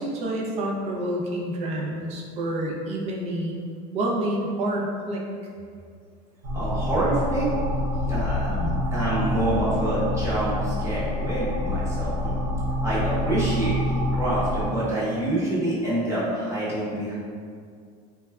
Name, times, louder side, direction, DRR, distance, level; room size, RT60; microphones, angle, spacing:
voice 1, 0.0-3.6 3.9-5.2 8.5-8.7, right 1 dB, 30° right, -1 dB, 0.4 m, -28 dB
sound 1, 6.4-14.7, left 1 dB, 85° right, 0.7 m, -27 dB
voice 2, 6.5-7.5 8.1-8.5 8.9-12.4 12.8-17.2, right 1 dB, 15° right, -9 dB, 0.8 m, -26 dB
3.1 x 2.2 x 2.2 m, 2.2 s
supercardioid pair, 140°, 21 cm